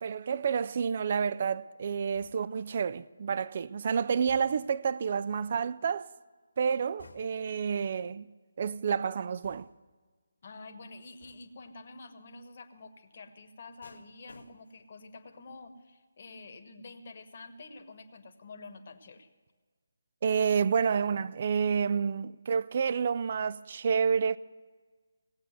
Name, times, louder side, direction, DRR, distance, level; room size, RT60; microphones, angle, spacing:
voice 1, 0.0-6.1 6.6-8.3 8.6-9.7 20.2-24.4, right 6 dB, 40° right, 0.3 m, -29 dB
sound 1, 2.1-2.7 4.3-4.9 7.0-7.6 9.4-10.0 11.2-11.7 13.8-14.9 15.3-15.7, left 3 dB, 65° left, 1.4 m, -57 dB
voice 2, 10.4-19.3, left 3 dB, 45° left, 1.2 m, -48 dB
18.0 x 8.5 x 7.8 m
figure-of-eight pair, 150°, 0 cm